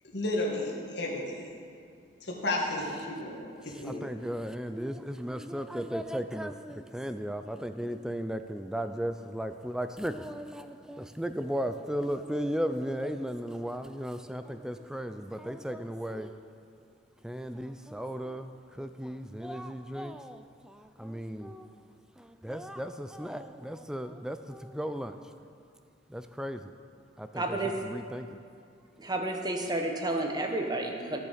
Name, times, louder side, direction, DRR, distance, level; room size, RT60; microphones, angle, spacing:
voice 1, 0.1-1.5 2.2-4.0, left 1 dB, 65° left, -3 dB, 1.7 m, -33 dB
voice 2, 3.6-16.4 17.2-21.7 22.2-25.3 26.1-26.7 27.2-28.4, equal, 5° right, 9 dB, 0.3 m, -36 dB
voice 3, 27.4-27.7 29.0-31.2, right 2 dB, 20° right, 3 dB, 0.9 m, -31 dB
14.0 x 6.9 x 5.0 m, 2.4 s
head